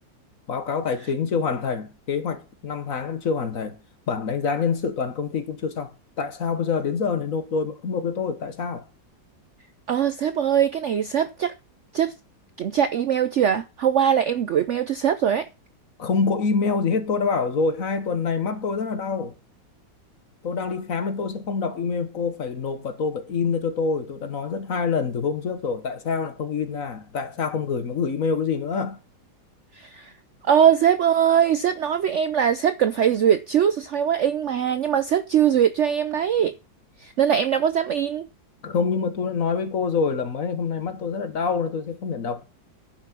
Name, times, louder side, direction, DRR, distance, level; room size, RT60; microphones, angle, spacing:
voice 1, 0.5-3.8 4.1-5.9 6.2-8.8 16.0-19.3 20.4-29.0 38.6-42.4, left 5 dB, 50° left, 1.5 m, -26 dB
voice 2, 9.9-11.5 11.9-12.1 12.6-15.5 29.7-30.1 30.4-36.6 37.0-38.3, right 9 dB, 85° right, 0.6 m, -21 dB
10.5 x 5.9 x 6.0 m
omnidirectional pair, 2.0 m